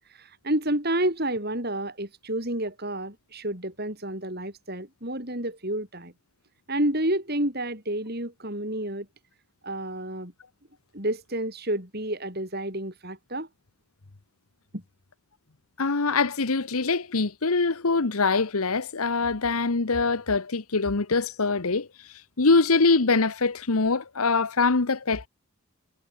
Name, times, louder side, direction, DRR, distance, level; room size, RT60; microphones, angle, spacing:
voice 1, 0.1-6.1 6.7-9.1 9.6-10.3 10.9-13.5 14.7-14.8, right 1 dB, 45° right, 6.0 m, -30 dB
voice 2, 15.8-21.9 22.4-25.3, left 4 dB, 80° left, 1.2 m, -23 dB
head